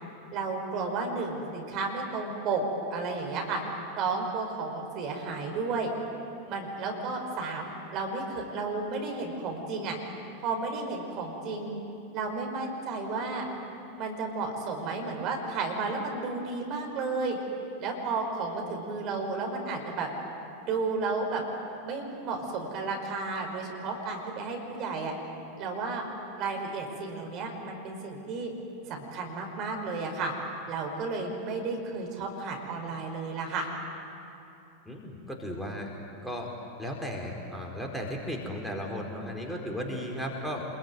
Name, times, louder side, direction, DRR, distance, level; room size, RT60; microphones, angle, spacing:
voice 1, 0.3-2.6 2.9-3.6 4.0-5.9 6.5-10.0 10.4-11.8 12.1-13.5 14.0-17.4 17.8-20.1 20.6-21.4 21.8-25.1 25.6-26.1 26.4-28.5 28.9-30.3 30.7-33.7, right 4 dB, 40° right, 2 dB, 5.4 m, -32 dB
voice 2, 34.9-35.9 36.2-36.5 36.8-40.7, equal, ahead, -1 dB, 4.6 m, -35 dB
27.0 x 22.0 x 9.5 m, 2.8 s
figure-of-eight pair, 90°, 0 cm